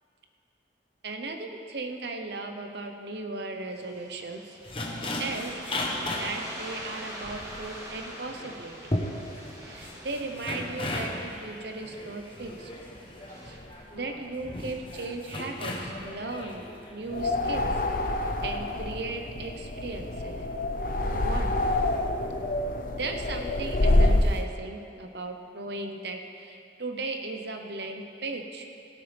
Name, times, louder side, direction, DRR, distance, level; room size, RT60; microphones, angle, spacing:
voice 1, 1.0-4.6 4.8-5.6 6.2-8.7 9.6-12.7 13.4-13.6 13.9-16.6 16.9-17.7 18.4-20.5 21.1-21.5 22.9-28.7, right 3 dB, 60° right, 4 dB, 0.9 m, -36 dB
sound 1, 3.8-13.5, right 1 dB, 20° right, 1.8 m, -45 dB
sound 2, 4.6-17.1, left 1 dB, 30° left, 1.0 m, -36 dB
sound 3, 17.1-24.4, left 1 dB, 45° left, 0.7 m, -26 dB
17.0 x 11.5 x 3.5 m, 2.6 s
head